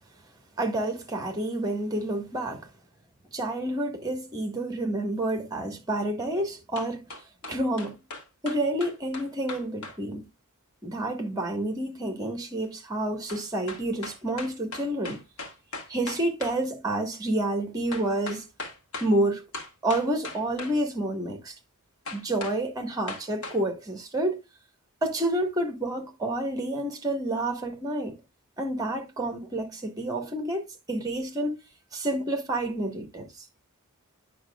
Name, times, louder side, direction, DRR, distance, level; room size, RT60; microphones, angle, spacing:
voice 1, 0.6-2.7 3.3-7.0 7.5-8.0 8.4-10.2 10.8-15.2 15.9-18.5 19.0-19.5 19.8-21.5 22.1-24.4 25.0-28.2 28.6-31.6 31.9-33.4, right 1 dB, 15° right, 1.5 m, -29 dB
sound 1, 6.8-10.0 13.3-16.6 17.9-19.1 19.5-20.8 22.0-22.6 23.1-23.6, left 3 dB, 80° left, 1.7 m, -39 dB
9.3 x 6.0 x 2.3 m
head